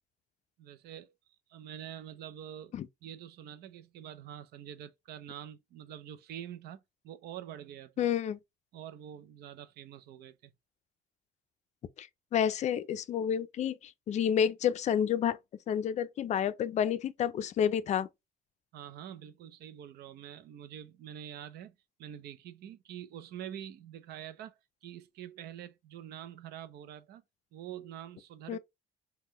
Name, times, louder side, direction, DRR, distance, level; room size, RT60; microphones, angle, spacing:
voice 1, 0.6-1.1 1.5-8.1 8.7-10.5 18.7-21.7 22.0-24.6 24.8-27.2 27.5-28.6, right 10 dB, 70° right, 0.5 m, -46 dB
voice 2, 8.0-8.4 12.0-15.4 15.7-18.1 28.5-28.6, left 9 dB, 45° left, 0.4 m, -30 dB
3.6 x 2.2 x 2.9 m
cardioid pair, 110°, 17 cm